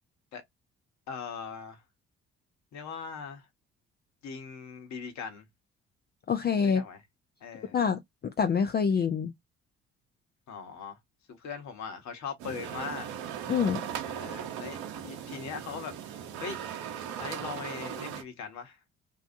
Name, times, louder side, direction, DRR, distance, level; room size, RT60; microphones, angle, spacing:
voice 1, 1.1-1.8 2.7-3.5 4.2-5.4 6.6-7.0 7.4-7.8 10.5-11.0 11.3-13.1 14.1-16.6 17.2-18.8, left 6 dB, 60° left, 1.1 m, -40 dB
voice 2, 6.3-6.8 7.7-9.3 13.5-13.8, left 6 dB, 30° left, 0.5 m, -26 dB
World Trade Center during wind storm, 12.4-18.2, right 9 dB, 80° right, 0.8 m, -38 dB
2.7 x 2.2 x 2.5 m
hypercardioid pair, 50°, 31 cm